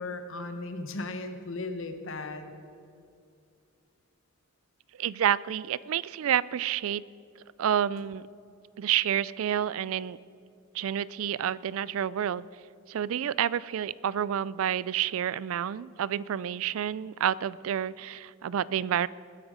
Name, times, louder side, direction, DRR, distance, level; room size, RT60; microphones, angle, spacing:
voice 1, 0.0-2.5, left 2 dB, 60° left, 7 dB, 1.2 m, -36 dB
voice 2, 5.0-7.0 7.6-8.2 8.8-10.2 10.7-12.5 12.9-19.1, right 10 dB, 65° right, 20 dB, 0.3 m, -29 dB
21.0 x 10.0 x 5.0 m, 2.5 s
head